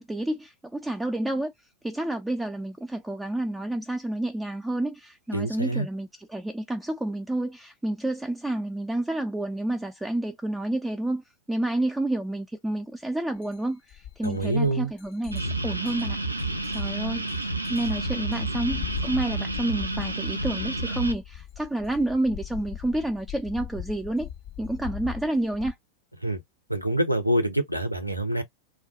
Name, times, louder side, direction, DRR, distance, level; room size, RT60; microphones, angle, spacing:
voice 1, 0.0-1.5 1.8-16.2 16.7-24.3 24.6-25.7, right 1 dB, 5° right, 0.3 m, -29 dB
voice 2, 5.3-5.9 14.2-14.9 26.2-26.4 26.7-28.4, right 1 dB, 90° left, 0.7 m, -26 dB
sound 1, 13.4-13.5 13.9-25.7, left 10 dB, 50° left, 0.5 m, -40 dB
sound 2, 15.3-21.1, right 2 dB, 85° right, 0.4 m, -30 dB
2.3 x 2.2 x 3.6 m
figure-of-eight pair, 90°, 0 cm